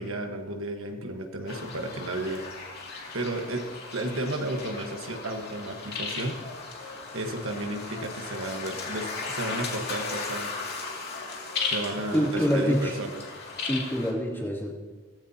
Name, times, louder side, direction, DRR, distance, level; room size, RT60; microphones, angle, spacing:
voice 1, 0.0-2.4 3.1-3.6 3.9-6.3 7.1-10.5 11.6-13.2, right 1 dB, 65° right, 3 dB, 1.4 m, -33 dB
sound 1, 1.5-14.1, left 4 dB, 50° left, 2.4 m, -36 dB
voice 2, 12.1-12.9 13.6-14.7, equal, 10° left, -4 dB, 2.8 m, -26 dB
17.0 x 15.5 x 2.9 m, 1.4 s
head